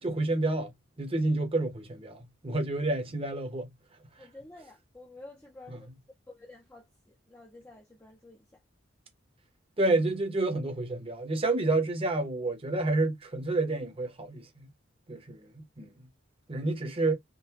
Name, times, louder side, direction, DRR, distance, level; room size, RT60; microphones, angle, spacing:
voice 1, 0.0-0.7 1.0-3.7 5.7-5.8 9.8-14.7 15.1-15.9 16.5-17.1, right 2 dB, 30° right, 0.9 m, -29 dB
voice 2, 4.2-5.9 6.3-8.6, left 2 dB, 10° left, 0.6 m, -51 dB
3.7 x 2.2 x 2.8 m
head